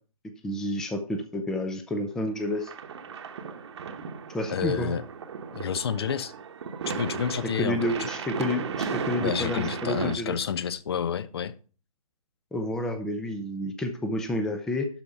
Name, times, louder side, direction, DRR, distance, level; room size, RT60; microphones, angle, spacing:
voice 1, 0.4-2.7 4.3-4.9 7.6-10.4 12.5-14.9, left 1 dB, 5° left, 0.5 m, -30 dB
sound 1, 2.5-10.2, right 6 dB, 50° right, 1.1 m, -35 dB
voice 2, 4.5-5.0 5.5-6.3 6.9-8.1 9.2-11.5, left 7 dB, 45° left, 0.7 m, -29 dB
12.0 x 4.5 x 6.7 m
figure-of-eight pair, 145°, 19 cm